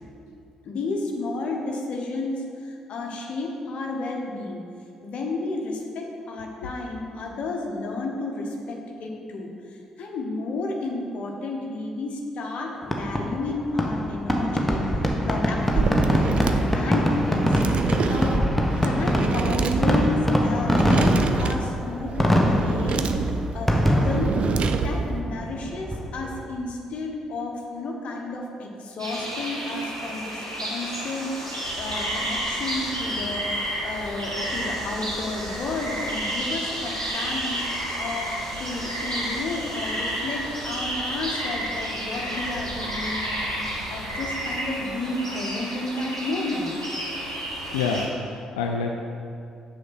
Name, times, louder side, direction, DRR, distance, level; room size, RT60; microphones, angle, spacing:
voice 1, 0.6-4.6 5.0-14.8 15.2-17.8 18.1-18.4 18.8-24.4 24.8-33.5 33.8-46.8, left 2 dB, 50° left, 0 dB, 1.1 m, -32 dB
Fireworks, 12.8-26.4, equal, 5° left, 1.1 m, -24 dB
sound 1, 15.6-25.2, right 5 dB, 45° right, 0.4 m, -27 dB
sound 2, 29.0-48.1, equal, 90° right, 0.8 m, -31 dB
voice 2, 47.7-49.0, left 4 dB, 70° left, 2 dB, 0.4 m, -27 dB
6.4 x 5.1 x 5.9 m, 2.5 s
figure-of-eight pair, 40°, 3 cm